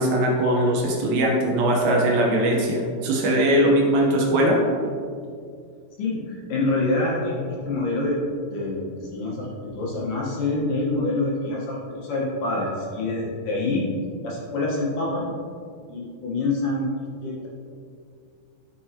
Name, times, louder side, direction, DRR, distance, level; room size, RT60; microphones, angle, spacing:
voice 1, 0.0-4.6, right 1 dB, 70° right, -1 dB, 2.6 m, -20 dB
voice 2, 6.0-8.2 8.4-13.9 14.2-15.3 15.9-16.9 17.2-17.5, left 2 dB, 65° left, -5 dB, 2.5 m, -26 dB
12.5 x 6.3 x 2.9 m, 2.3 s
omnidirectional pair, 4.7 m